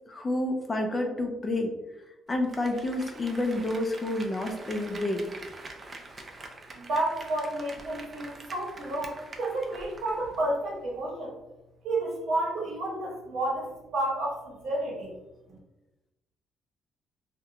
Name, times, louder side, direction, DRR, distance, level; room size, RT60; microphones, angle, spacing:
voice 1, 0.1-1.7 2.3-5.3, left 1 dB, 30° left, 3 dB, 0.4 m, -29 dB
Applause, 2.3-10.5 10.8-10.9, right 2 dB, 35° right, 0.4 m, -45 dB
voice 2, 6.7-11.3 11.8-15.1, right 1 dB, 75° right, -3 dB, 0.9 m, -31 dB
2.6 x 2.1 x 2.7 m, 1.0 s
cardioid pair, 90°, 0 cm